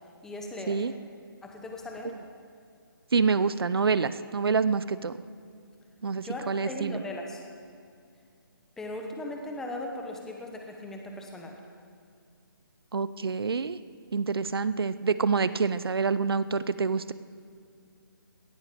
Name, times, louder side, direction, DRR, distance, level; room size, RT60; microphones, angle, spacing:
voice 1, 0.2-0.9 1.4-2.2 6.1-7.4 8.8-11.6, left 1 dB, 5° left, 1 dB, 0.9 m, -38 dB
voice 2, 3.1-5.1 6.0-7.0 12.9-13.8 14.1-17.1, right 5 dB, 85° right, 15 dB, 0.6 m, -27 dB
17.5 x 13.5 x 5.1 m, 2.3 s
hypercardioid pair, 165°, 12 cm